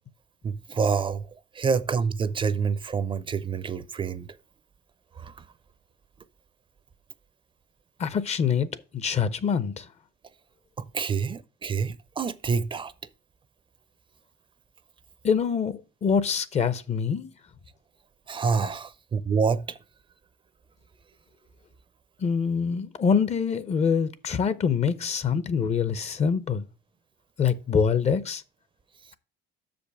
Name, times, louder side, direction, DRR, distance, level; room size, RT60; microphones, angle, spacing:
voice 1, 0.4-1.3 1.5-4.3 5.2-5.3 10.8-12.9 18.3-19.8, right 5 dB, 30° right, 0.5 m, -27 dB
voice 2, 8.0-9.9 15.2-17.3 22.2-26.6 27.4-28.4, left 6 dB, 40° left, 0.7 m, -25 dB
6.5 x 5.2 x 6.8 m
cardioid pair, 110°, 17 cm